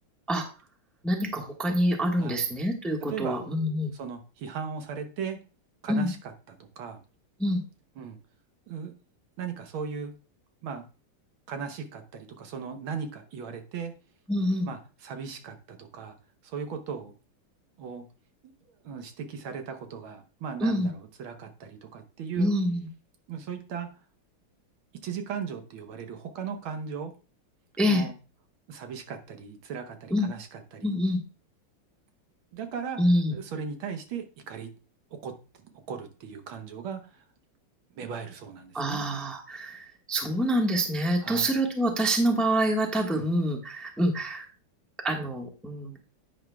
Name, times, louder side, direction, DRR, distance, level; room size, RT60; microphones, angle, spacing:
voice 1, 1.0-3.9 5.9-6.1 7.4-7.6 14.3-14.7 20.6-20.9 22.4-22.9 27.8-28.0 30.1-30.3 30.8-31.2 33.0-33.3 38.7-44.4 45.0-46.1, equal, ahead, 2 dB, 1.0 m, -26 dB
voice 2, 3.1-3.4 3.9-5.4 5.8-7.0 8.0-8.2 8.7-8.9 9.4-10.1 10.6-10.8 11.5-13.9 14.6-16.2 16.4-17.1 17.8-18.1 18.8-20.9 21.2-22.5 23.3-23.9 25.0-27.1 27.9-28.1 28.7-30.9 32.5-33.0 33.3-34.7 35.1-35.3 35.9-37.2 37.9-39.0 41.2-41.5 43.1-43.3, right 6 dB, 70° right, 6 dB, 1.8 m, -37 dB
10.5 x 9.7 x 2.3 m, 0.34 s
omnidirectional pair, 2.4 m